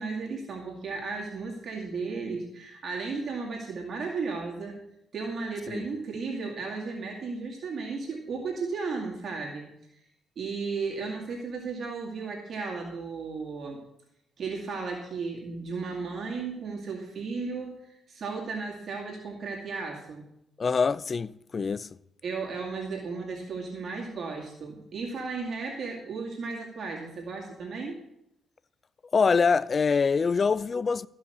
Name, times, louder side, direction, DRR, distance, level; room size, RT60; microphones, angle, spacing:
voice 1, 0.0-4.8 5.1-9.7 10.4-13.8 14.4-20.3 22.2-28.0, right 4 dB, 55° right, 2.2 m, -34 dB
voice 2, 20.6-21.9 29.1-31.1, left 5 dB, 40° left, 0.3 m, -24 dB
14.0 x 5.6 x 6.7 m
cardioid pair, 90°, 0 cm